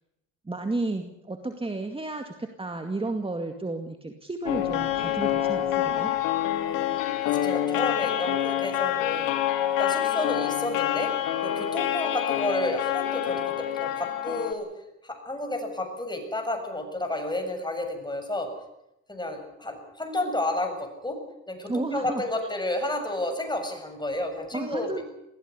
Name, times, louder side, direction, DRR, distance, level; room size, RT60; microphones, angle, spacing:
voice 1, 0.5-6.1 21.7-22.2 24.5-25.0, right 2 dB, 15° right, 5 dB, 2.2 m, -32 dB
sound 1, 4.5-14.5, left 12 dB, 80° left, 2.6 m, -27 dB
voice 2, 6.7-7.0 7.2-9.4 9.8-11.1 11.4-14.7 15.0-18.5 19.1-21.2 21.5-25.0, left 1 dB, 15° left, 5 dB, 7.3 m, -31 dB
21.0 x 16.0 x 9.9 m, 0.87 s
supercardioid pair, 70°, 33 cm